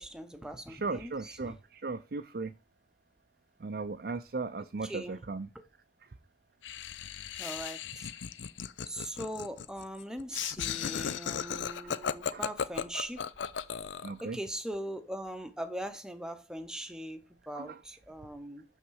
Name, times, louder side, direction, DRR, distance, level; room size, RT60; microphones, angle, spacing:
voice 1, 0.0-1.5 4.8-5.2 7.4-8.1 8.9-13.2 14.2-18.6, right 1 dB, 5° right, 0.8 m, -40 dB
voice 2, 0.7-2.5 3.6-5.5 6.0-6.1 11.8-11.9 12.3-12.4 14.0-14.4 17.5-17.8, right 3 dB, 55° right, 0.5 m, -37 dB
Laughter, 6.6-14.2, left 7 dB, 90° left, 0.5 m, -36 dB
6.6 x 5.9 x 4.7 m
head